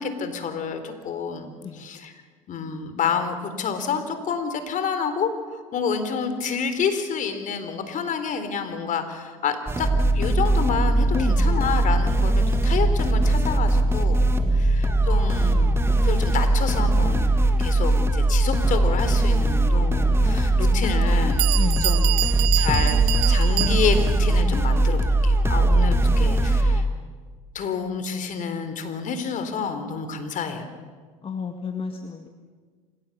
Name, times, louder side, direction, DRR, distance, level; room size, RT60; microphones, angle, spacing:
voice 1, 0.0-2.1 2.5-9.9 10.1-17.3 17.6-22.1 22.5-23.0 23.3-26.8 27.5-30.7, left 6 dB, 45° left, 9 dB, 3.8 m, -29 dB
sound 1, 9.7-26.8, right 2 dB, 15° right, 2.2 m, -20 dB
voice 2, 11.1-11.4 14.4-14.8 21.5-22.0 26.2-27.1 31.2-32.3, left 5 dB, 30° left, 5 dB, 1.9 m, -33 dB
Bell, 21.0-21.1 21.4-24.2, right 26 dB, 70° right, 0.6 m, -27 dB
28.0 x 17.0 x 7.3 m, 1.5 s
hypercardioid pair, 75°, 18 cm